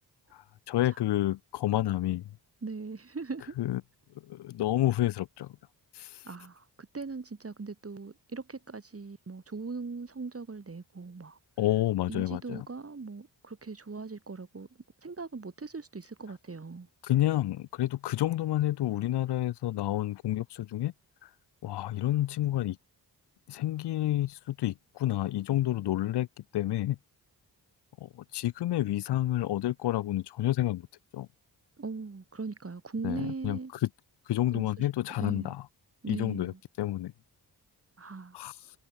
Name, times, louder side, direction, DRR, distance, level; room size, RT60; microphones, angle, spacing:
voice 1, 0.3-2.3 3.6-3.8 4.2-5.5 5.9-6.2 11.6-12.7 17.0-20.9 21.6-22.8 23.5-26.3 26.5-27.0 28.0-30.9 31.1-31.3 33.0-33.9 34.3-35.6 36.1-37.1 38.3-38.5, left 14 dB, 70° left, 0.6 m, -29 dB
voice 2, 2.6-3.6 6.2-11.4 12.1-14.7 15.0-16.9 31.8-33.7 34.5-35.6 36.0-36.6 38.0-38.4, right 4 dB, 35° right, 3.4 m, -40 dB
cardioid pair, 70°, 41 cm